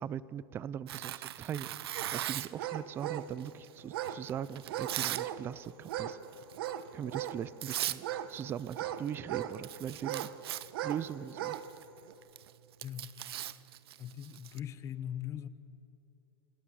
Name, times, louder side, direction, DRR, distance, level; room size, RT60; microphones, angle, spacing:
voice 1, 0.0-6.2 6.9-10.3 10.8-11.6, right 9 dB, 20° right, 19 dB, 0.4 m, -40 dB
Tearing, 0.9-2.6 3.4-5.3 5.6-5.9 6.3-6.6 7.3-7.4 7.6-8.0 8.3-8.8 9.1-9.2 9.4-14.6, right 13 dB, 85° right, 0.8 m, -39 dB
sound 1, 2.0-2.1 2.6-3.3 3.9-4.2 4.7-5.4 5.8-6.2 6.5-7.4 8.0-9.6 10.0-10.3 10.7-11.0 11.3-11.7 12.1-12.2, right 12 dB, 65° right, 1.3 m, -37 dB
voice 2, 12.8-13.1 14.0-15.5, left 10 dB, 25° left, 14 dB, 0.9 m, -40 dB
27.5 x 18.5 x 7.6 m, 2.9 s
supercardioid pair, 155°, 13 cm